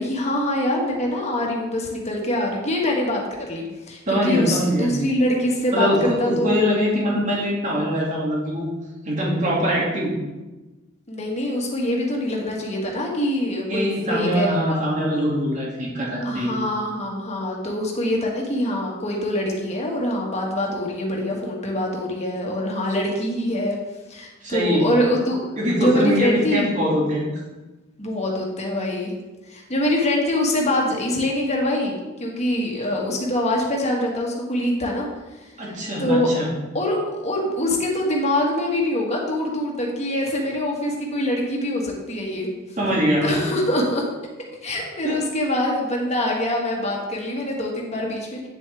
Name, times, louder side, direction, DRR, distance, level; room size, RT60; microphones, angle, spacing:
voice 1, 0.0-6.7 11.1-14.8 16.2-23.8 24.1-25.4 25.7-26.7 28.0-29.1 29.5-35.1 36.0-36.3 36.7-37.0 37.2-42.5 43.2-44.0 44.6-48.5, left 1 dB, 35° left, -1 dB, 1.8 m, -24 dB
voice 2, 4.1-4.9 5.7-8.7 9.0-10.1 13.7-16.5 24.4-24.9 25.6-27.4 35.6-36.5 42.8-43.4 45.0-45.2, equal, 40° right, -4 dB, 2.4 m, -23 dB
9.1 x 7.2 x 3.5 m, 1.1 s
head